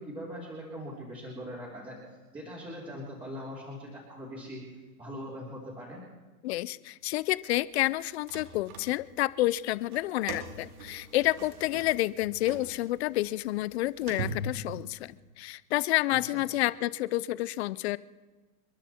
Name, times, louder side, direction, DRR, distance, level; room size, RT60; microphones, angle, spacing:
voice 1, 0.0-2.0 2.3-4.6 5.0-6.0 16.2-16.4, equal, 10° right, -7 dB, 3.4 m, -41 dB
voice 2, 6.4-18.0, left 17 dB, 45° left, 18 dB, 0.6 m, -29 dB
sound 1, 7.9-9.3 9.8-15.2, right 3 dB, 65° right, 3.0 m, -41 dB
29.5 x 11.0 x 4.4 m, 1.3 s
supercardioid pair, 155°, 47 cm